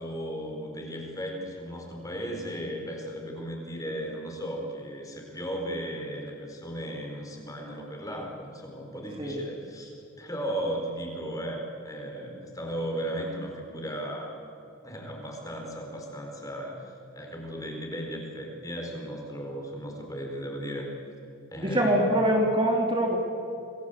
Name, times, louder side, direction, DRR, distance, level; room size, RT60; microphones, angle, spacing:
voice 1, 0.0-14.4 14.8-20.9 21.5-22.2, equal, 15° left, 1 dB, 4.5 m, -36 dB
voice 2, 21.5-23.2, right 1 dB, 25° right, 0 dB, 3.0 m, -24 dB
28.0 x 21.0 x 8.2 m, 2.8 s
head